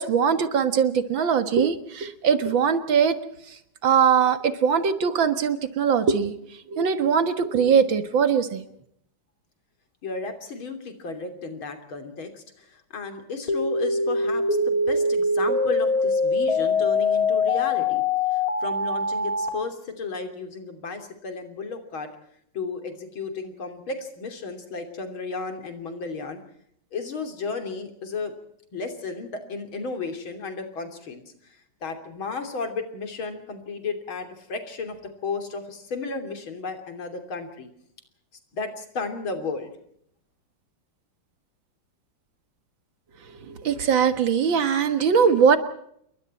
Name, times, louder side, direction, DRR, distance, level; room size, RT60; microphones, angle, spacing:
voice 1, 0.0-3.2 3.5-6.3 6.7-8.7 43.3-45.6, right 6 dB, 70° right, 10 dB, 2.3 m, -21 dB
voice 2, 10.0-18.0 18.3-22.1 22.5-26.4 26.9-28.3 28.7-31.6 31.8-37.7 38.5-39.7, left 4 dB, 85° left, 6 dB, 3.9 m, -33 dB
sound 1, 13.5-19.5, left 3 dB, 45° left, 3.8 m, -23 dB
28.5 x 22.5 x 4.4 m, 0.71 s
omnidirectional pair, 2.2 m